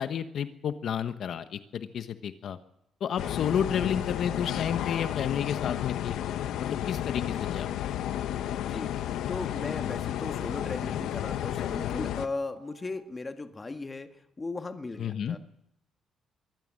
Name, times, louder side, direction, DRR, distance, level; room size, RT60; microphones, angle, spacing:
voice 1, 0.0-2.6 3.0-6.2 6.6-7.7 15.0-15.4, left 8 dB, 60° left, 9 dB, 1.1 m, -31 dB
sound 1, 3.2-12.3, left 11 dB, 85° left, 0.9 m, -32 dB
sound 2, 6.9-13.0, right 10 dB, 50° right, 1.9 m, -58 dB
voice 2, 8.7-14.1 14.4-15.4, left 3 dB, 20° left, 7 dB, 1.7 m, -37 dB
23.0 x 15.0 x 7.6 m, 0.80 s
cardioid pair, 125°, 0 cm